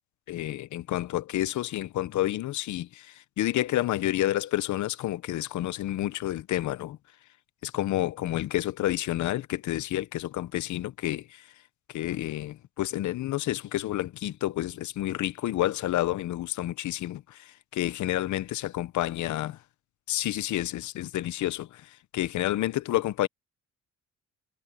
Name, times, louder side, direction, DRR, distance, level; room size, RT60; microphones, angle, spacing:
voice 1, 0.3-7.0 7.6-11.4 11.9-19.6 20.1-23.3, left 14 dB, 70° left, 0.8 m, -29 dB
cardioid pair, 90°, 30 cm